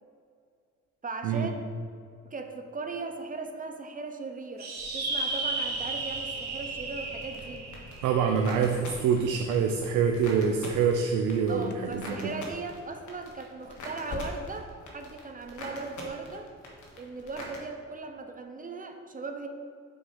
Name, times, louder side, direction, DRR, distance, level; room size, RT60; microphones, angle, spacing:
voice 1, 1.0-1.6 2.2-7.7 11.5-16.5 17.0-19.5, right 3 dB, 25° right, 5 dB, 0.7 m, -38 dB
sound 1, 4.6-9.3, right 3 dB, 60° right, 1.5 m, -34 dB
sound 2, 7.2-17.6, left 1 dB, 75° left, 1.5 m, -45 dB
voice 2, 8.0-12.3, right 6 dB, 90° right, 3 dB, 0.6 m, -26 dB
sound 3, 11.2-12.0 12.2-12.7 13.0-13.1 13.6-14.8 15.1-15.2 15.8-15.9, left 4 dB, 35° left, 0.6 m, -43 dB
6.4 x 4.5 x 5.1 m, 2.3 s
cardioid pair, 90°, 30 cm